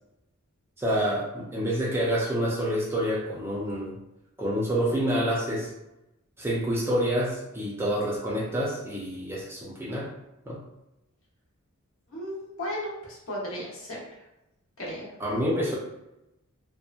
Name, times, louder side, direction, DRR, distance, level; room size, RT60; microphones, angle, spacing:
voice 1, 0.8-4.0 4.4-5.7 6.4-10.1 10.5-10.6 15.2-15.8, equal, 10° right, -4 dB, 0.4 m, -27 dB
voice 2, 12.1-14.0 14.8-15.1, equal, 70° left, -5 dB, 0.9 m, -35 dB
2.8 x 2.2 x 2.4 m, 0.92 s
head